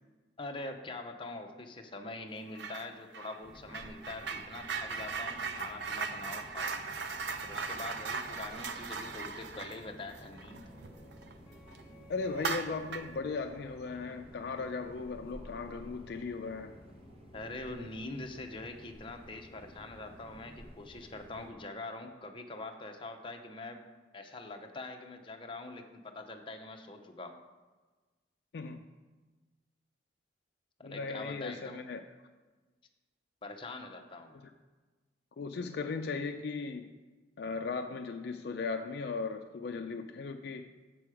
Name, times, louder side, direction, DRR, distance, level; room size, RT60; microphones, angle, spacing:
voice 1, 0.4-6.7 7.4-10.7 17.3-23.8 24.1-27.4 30.8-31.8 33.4-34.4, left 2 dB, 30° left, 3 dB, 0.7 m, -44 dB
sound 1, 2.6-2.9 3.1-11.3 11.7-11.8 12.3-13.2, right 5 dB, 65° right, 0.5 m, -38 dB
sound 2, 3.4-21.5, equal, 30° right, 1.1 m, -53 dB
sound 3, 9.9-15.1, equal, 10° right, 1.1 m, -59 dB
voice 2, 12.1-16.8 28.5-28.9 30.8-32.0 35.4-36.9 37.4-40.6, left 4 dB, 60° left, 5 dB, 0.4 m, -37 dB
7.6 x 6.0 x 4.8 m, 1.3 s
head